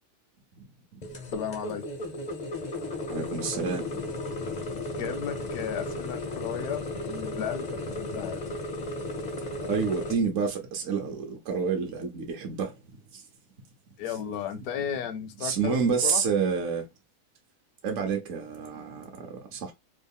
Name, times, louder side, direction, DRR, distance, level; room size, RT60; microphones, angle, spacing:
sound 1, 1.0-10.1, left 2 dB, 55° left, 0.4 m, -35 dB
voice 1, 1.3-1.8 5.0-8.5 14.0-16.2, left 8 dB, 70° left, 0.9 m, -34 dB
voice 2, 3.1-4.0 9.6-13.2 15.4-16.9 17.8-19.7, right 5 dB, 60° right, 0.8 m, -29 dB
3.1 x 2.3 x 3.5 m
omnidirectional pair, 1.8 m